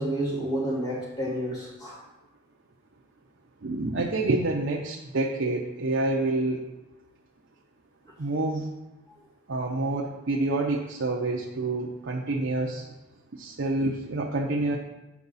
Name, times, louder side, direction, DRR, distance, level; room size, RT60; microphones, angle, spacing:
voice 1, 0.0-2.0, right 1 dB, 20° left, -5 dB, 2.0 m, -30 dB
voice 2, 3.6-6.6 8.2-8.7 9.5-12.9 13.4-14.8, right 2 dB, 55° right, -1 dB, 0.6 m, -27 dB
8.3 x 5.5 x 4.0 m, 1.0 s
head